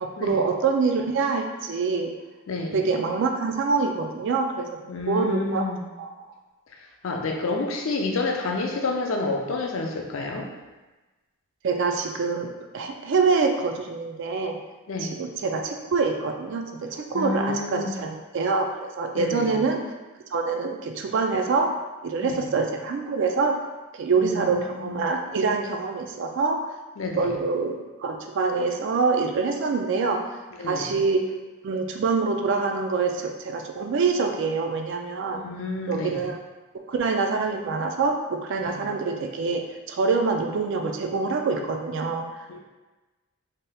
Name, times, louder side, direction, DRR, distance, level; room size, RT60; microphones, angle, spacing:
voice 1, 0.0-2.1 2.7-4.7 5.1-5.7 6.0-6.1 11.6-14.6 15.0-19.8 20.3-21.7 22.0-23.6 23.9-26.6 27.2-30.2 30.7-31.2 31.6-35.4 35.9-36.4 36.9-42.4, right 4 dB, 60° right, 4 dB, 0.3 m, -25 dB
voice 2, 2.5-2.8 4.9-5.9 6.8-10.5 14.9-15.2 17.1-17.9 19.1-19.6 22.2-22.4 24.2-25.1 27.0-27.3 30.6-30.9 35.3-36.2 38.6-38.8 42.5-42.6, left 3 dB, 70° left, 1 dB, 0.5 m, -29 dB
2.8 x 2.3 x 3.3 m, 1.1 s
head